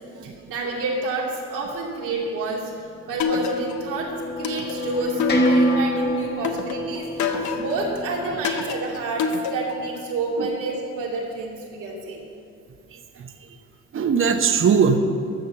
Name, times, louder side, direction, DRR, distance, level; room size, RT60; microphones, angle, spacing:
voice 1, 0.2-4.1 4.4-12.2, right 3 dB, 90° right, -2 dB, 2.6 m, -29 dB
sound 1, 3.0-9.0, equal, 35° left, 1.6 m, -26 dB
sound 2, 3.2-4.0 4.4-5.9 6.4-7.9 8.4-9.9, left 5 dB, 70° left, 1.0 m, -27 dB
voice 2, 12.9-13.3 13.9-15.0, right 6 dB, 45° right, 6 dB, 0.9 m, -20 dB
14.0 x 6.4 x 6.9 m, 2.5 s
cardioid pair, 90°, 30 cm